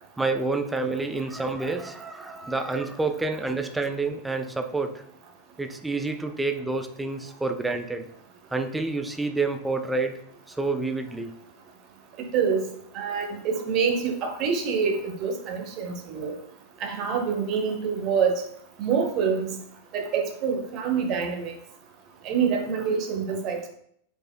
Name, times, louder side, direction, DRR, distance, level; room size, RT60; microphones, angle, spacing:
voice 1, 0.2-5.0 5.6-8.1 8.5-10.2 10.5-11.4, right 3 dB, 10° right, 7 dB, 0.4 m, -28 dB
voice 2, 12.3-12.7 12.9-16.3 16.8-18.4 18.8-19.6 19.9-21.5 22.2-23.7, right 6 dB, 40° right, 3 dB, 0.8 m, -26 dB
4.9 x 4.2 x 2.2 m, 0.68 s
figure-of-eight pair, 90°, 0 cm